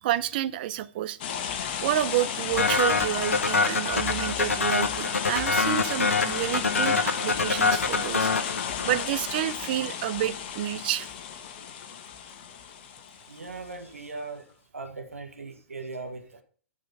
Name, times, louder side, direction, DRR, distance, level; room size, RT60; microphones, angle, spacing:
voice 1, 0.0-1.2 1.8-8.3 8.8-11.1, right 13 dB, 45° right, 14 dB, 0.7 m, -29 dB
sound 1, 1.2-13.8, left 8 dB, 45° left, 1.3 m, -33 dB
sound 2, 2.6-9.2, left 4 dB, 75° left, 1.0 m, -25 dB
voice 2, 13.3-14.5 14.7-16.4, right 3 dB, 80° right, 5 dB, 1.8 m, -39 dB
12.5 x 5.1 x 5.5 m, 0.43 s
figure-of-eight pair, 115°, 7 cm